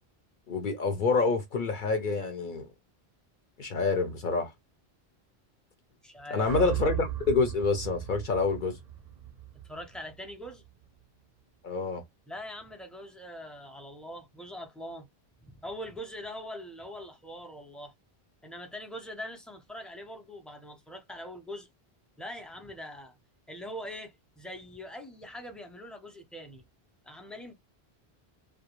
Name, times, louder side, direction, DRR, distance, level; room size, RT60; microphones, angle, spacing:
voice 1, 0.5-2.7 3.6-4.5 6.3-8.8 11.6-12.0, left 4 dB, 55° left, 0.7 m, -27 dB
voice 2, 6.0-6.5 9.6-10.6 12.3-15.1 15.4-17.9 18.4-21.7 22.2-23.1 23.5-26.6 27.0-27.5, equal, ahead, 0.4 m, -42 dB
sound 1, 6.5-10.7, right 11 dB, 55° right, 0.5 m, -37 dB
2.3 x 2.1 x 2.9 m
omnidirectional pair, 1.1 m